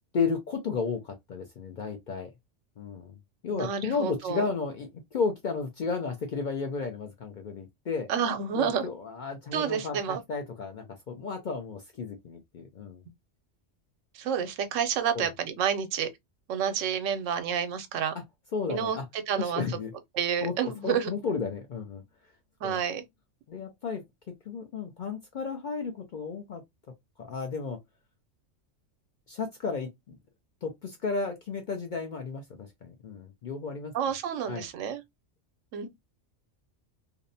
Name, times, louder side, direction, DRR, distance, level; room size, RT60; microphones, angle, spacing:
voice 1, 0.1-2.3 2.8-3.2 3.4-8.1 8.6-13.0 15.1-15.3 18.5-19.1 19.4-19.9 20.4-22.0 22.6-22.8 23.5-24.0 24.5-26.6 27.2-27.8 29.3-30.2 30.6-33.9 34.5-34.7, left 5 dB, 60° left, 0.5 m, -33 dB
voice 2, 3.5-4.5 8.1-8.9 9.5-10.2 14.1-16.1 16.5-18.1 18.7-19.0 19.3-19.6 20.1-21.1 22.6-23.1 33.9-35.0 35.7-35.9, right 8 dB, 85° right, 0.9 m, -29 dB
2.6 x 2.0 x 2.5 m
omnidirectional pair, 1.3 m